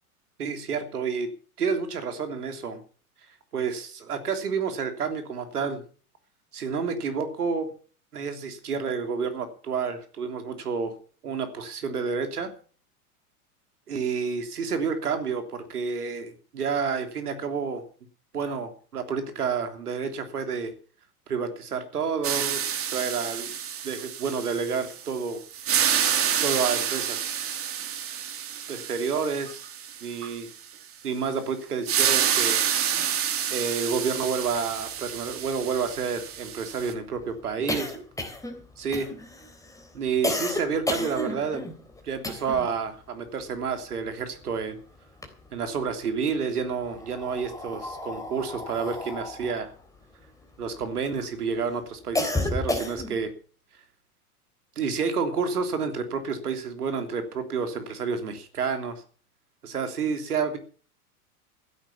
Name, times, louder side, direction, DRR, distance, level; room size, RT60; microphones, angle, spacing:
voice 1, 0.4-1.3 1.6-2.8 3.5-5.8 6.5-7.7 8.1-10.9 11.2-12.5 13.9-17.8 18.3-20.7 21.3-22.6 22.9-23.5 23.8-25.4 26.4-27.3 28.7-29.6 30.0-30.5 31.0-32.6 33.5-37.9 38.8-39.1 39.9-41.7 42.0-44.8 45.5-49.7 50.6-53.3 54.7-59.0 59.6-60.6, right 5 dB, 75° right, 7 dB, 3.3 m, -29 dB
sound 1, 22.2-25.2 25.5-30.3 31.9-36.9, right 8 dB, 30° right, 2.6 m, -28 dB
sound 2, 34.9-35.0 35.3-42.8 43.1-44.6 45.0-45.9 46.7-51.1 51.6-53.3, left 1 dB, 5° left, 3.6 m, -32 dB
15.5 x 9.1 x 7.2 m, 0.42 s
figure-of-eight pair, 90°, 46 cm